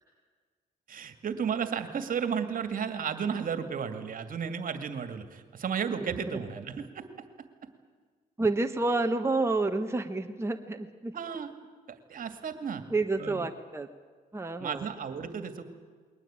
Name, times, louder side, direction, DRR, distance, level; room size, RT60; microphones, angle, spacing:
voice 1, 0.9-7.3 7.6-7.7 11.1-11.5 11.9-12.8 13.2-13.4 14.6-15.6, right 7 dB, 60° right, 9 dB, 2.4 m, -33 dB
voice 2, 6.0-6.4 8.4-11.1 12.9-13.9 14.3-14.9, right 2 dB, 15° right, 5 dB, 1.5 m, -29 dB
22.0 x 18.5 x 9.0 m, 1.5 s
supercardioid pair, 70°, 16 cm